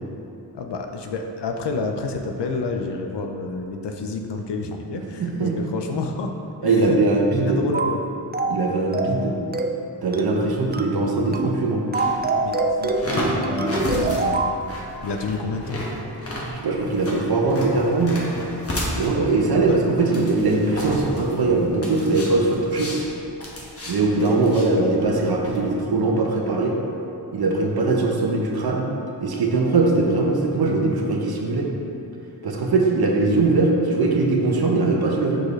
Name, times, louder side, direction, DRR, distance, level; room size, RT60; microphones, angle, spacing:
voice 1, 0.5-6.3 6.6-7.0 7.4-8.0 12.4-14.5 15.0-15.8 19.5-20.3, left 3 dB, 75° left, 3 dB, 0.7 m, -29 dB
voice 2, 5.2-5.6 6.6-7.6 8.5-9.4 10.0-11.8 16.5-18.2 19.0-22.9 23.9-26.7 27.3-28.9 29.2-31.7 32.4-35.4, right 3 dB, 60° right, 0 dB, 1.0 m, -21 dB
Cartoon Music, 7.7-8.0 8.3-8.6 8.9-9.2 9.5-9.8 10.1-10.4 10.7-11.0 11.3-11.6 11.9-14.6, right 3 dB, 25° right, 0.4 m, -24 dB
sound 1, 11.9-25.6, left 1 dB, 35° left, 1.3 m, -32 dB
6.3 x 5.0 x 3.2 m, 2.8 s
cardioid pair, 55°, 42 cm